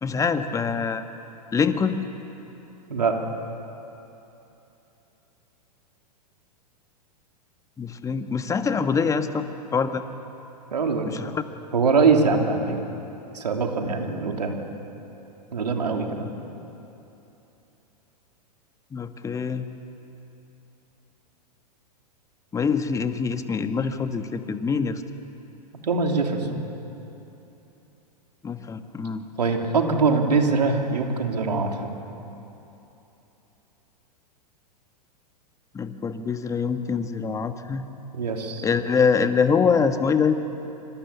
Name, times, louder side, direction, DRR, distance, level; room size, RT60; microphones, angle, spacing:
voice 1, 0.0-1.0 1.5-2.0 7.8-10.0 11.1-11.3 18.9-19.7 22.5-25.0 28.4-29.2 35.7-37.9 38.6-40.3, left 5 dB, 15° left, 8 dB, 1.5 m, -24 dB
voice 2, 10.7-11.1 11.7-12.8 13.3-14.6 15.5-16.3 25.8-26.6 29.4-31.9 38.1-38.7, right 4 dB, 75° right, 3 dB, 3.5 m, -23 dB
27.0 x 25.5 x 7.2 m, 3.0 s
figure-of-eight pair, 100°, 21 cm